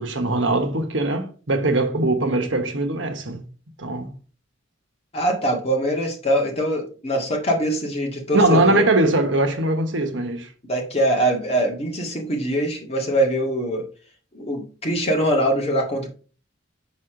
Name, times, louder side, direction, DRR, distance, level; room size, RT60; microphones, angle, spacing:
voice 1, 0.0-3.4 3.8-4.1 8.3-10.5, right 2 dB, 70° right, 1.2 m, -21 dB
voice 2, 5.1-8.8 10.7-13.8 14.3-16.1, right 1 dB, 30° left, 1.9 m, -23 dB
6.4 x 5.8 x 3.8 m
head